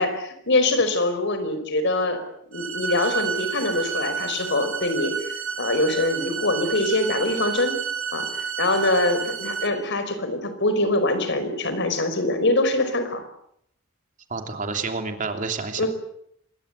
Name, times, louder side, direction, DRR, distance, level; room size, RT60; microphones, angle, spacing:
voice 1, 0.0-2.2 2.5-5.1 5.6-7.7 8.1-8.3 8.6-13.2 15.8-15.9, left 2 dB, 60° left, 9 dB, 5.2 m, -23 dB
sound 1, 2.5-9.7, right 7 dB, 75° right, 5.2 m, -30 dB
voice 2, 14.3-15.9, right 4 dB, 40° right, 5 dB, 3.1 m, -29 dB
26.5 x 21.5 x 8.3 m, 0.73 s
head